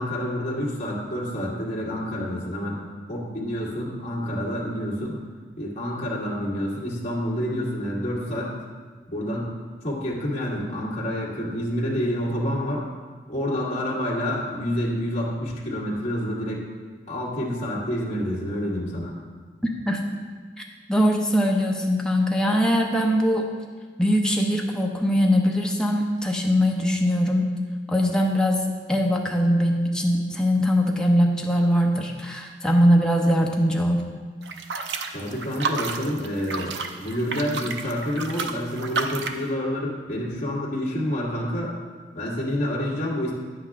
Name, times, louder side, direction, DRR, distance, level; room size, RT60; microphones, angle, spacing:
voice 1, 0.0-2.8 3.1-5.2 5.6-8.6 9.1-9.5 9.8-12.8 13.3-16.6 17.1-19.1 35.1-41.7 42.1-43.3, equal, 35° left, -6 dB, 2.0 m, -28 dB
voice 2, 20.6-23.5 24.0-27.5 27.9-28.6 28.9-34.0, equal, 5° left, 0 dB, 0.8 m, -21 dB
sound 1, 34.4-39.4, right 4 dB, 70° right, 0.6 m, -31 dB
9.7 x 7.8 x 3.6 m, 1.5 s
head